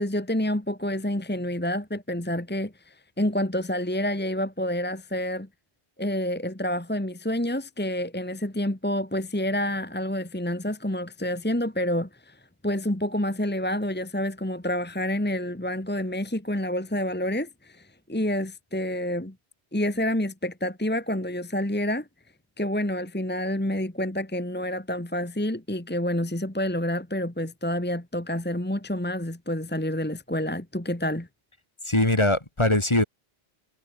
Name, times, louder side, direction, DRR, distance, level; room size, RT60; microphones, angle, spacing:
voice 1, 0.0-5.5 6.0-12.4 12.6-19.3 19.7-22.1 22.6-31.3, left 1 dB, 10° left, 1.6 m, -28 dB
voice 2, 31.9-33.0, left 1 dB, 25° left, 2.4 m, -21 dB
omnidirectional pair, 1.1 m